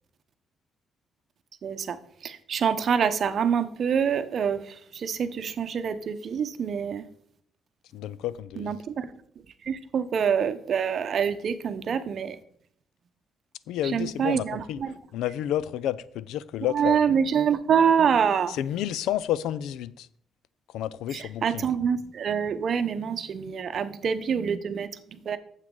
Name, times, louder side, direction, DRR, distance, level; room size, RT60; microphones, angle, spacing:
voice 1, 1.6-2.0 2.2-7.0 8.6-9.1 9.7-12.4 13.9-14.9 16.7-18.6 21.1-25.4, right 7 dB, 55° right, 0.8 m, -26 dB
voice 2, 7.9-8.8 13.7-14.8 15.1-17.0 18.5-20.1 20.7-21.7, left 12 dB, 90° left, 0.4 m, -30 dB
9.1 x 7.4 x 3.8 m
cardioid pair, 90°, 0 cm